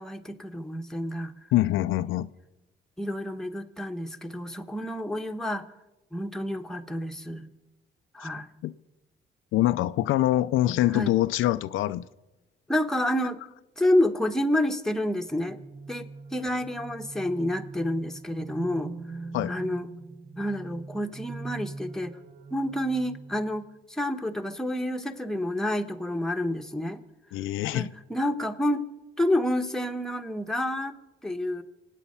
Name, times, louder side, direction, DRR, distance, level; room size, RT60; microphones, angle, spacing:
voice 1, 0.0-1.3 3.0-5.7 6.1-7.5 8.1-8.5 10.9-11.1 12.7-13.4 13.8-15.6 15.9-19.0 19.5-19.9 20.4-22.1 22.5-27.0 27.7-28.9 29.2-31.0 31.2-31.6, left 1 dB, 5° left, 1.1 m, -29 dB
voice 2, 1.5-2.3 8.6-8.7 9.5-12.1 19.3-19.6 27.3-27.9, left 14 dB, 85° left, 0.5 m, -24 dB
sound 1, 15.3-23.7, right 3 dB, 65° right, 1.6 m, -42 dB
25.5 x 9.1 x 5.5 m
cardioid pair, 90°, 20 cm